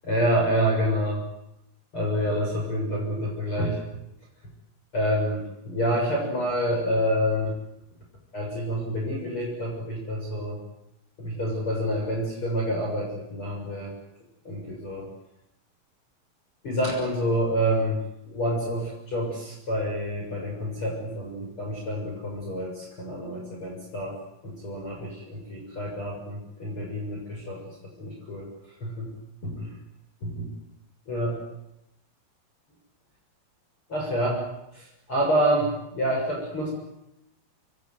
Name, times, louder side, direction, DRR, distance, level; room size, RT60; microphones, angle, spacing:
voice 1, 0.1-1.2 1.9-3.8 4.9-7.5 8.3-10.6 11.2-13.9 14.5-15.1 16.6-18.0 18.3-24.1 24.4-27.6 28.0-28.5 28.8-29.1 29.4-29.7 30.2-30.5 31.1-31.4 33.9-34.4 34.7-36.7, equal, 25° left, -1 dB, 7.1 m, -27 dB
27.0 x 23.0 x 9.5 m, 0.84 s
omnidirectional pair, 5.7 m